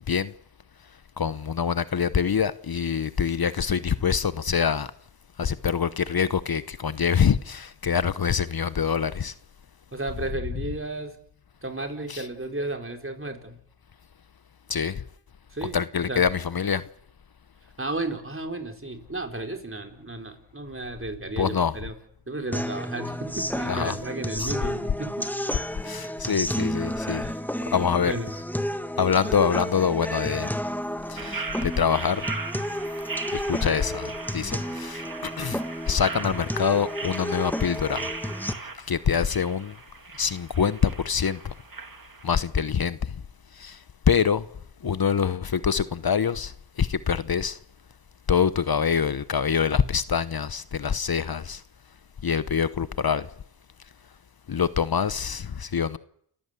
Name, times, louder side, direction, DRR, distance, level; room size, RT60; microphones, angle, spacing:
voice 1, 1.2-4.9 5.4-9.3 12.1-12.2 14.7-15.0 15.6-16.8 21.4-21.8 23.7-24.0 24.4-24.5 25.8-27.2 27.7-28.1 29.0-30.5 31.1-32.3 33.3-35.6 35.9-38.1 38.8-39.8 40.2-41.5 42.2-43.2 43.5-44.5 44.8-47.6 48.3-51.6 52.2-53.3 54.5-56.0, left 7 dB, 55° left, 1.0 m, -25 dB
voice 2, 9.9-11.1 11.6-13.6 15.5-15.8 16.1-16.2 17.8-21.9 22.3-25.3 27.2-27.4 28.0-28.3 33.6-33.8, right 2 dB, 30° right, 4.4 m, -33 dB
sound 1, 22.5-38.5, equal, 5° left, 1.6 m, -32 dB
sound 2, 31.2-42.5, right 4 dB, 50° right, 2.6 m, -38 dB
29.5 x 14.5 x 8.3 m
cardioid pair, 50°, 43 cm